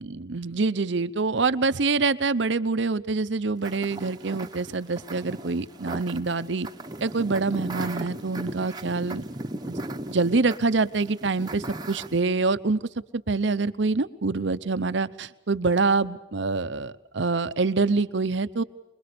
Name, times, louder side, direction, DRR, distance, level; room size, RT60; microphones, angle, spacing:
voice 1, 0.0-6.7 7.0-9.2 9.7-9.8 10.1-12.8 13.3-18.6, right 3 dB, 65° right, 14 dB, 0.8 m, -25 dB
sound 1, 3.6-12.2, right 1 dB, 20° right, 1.1 m, -37 dB
25.0 x 22.0 x 6.8 m, 0.98 s
head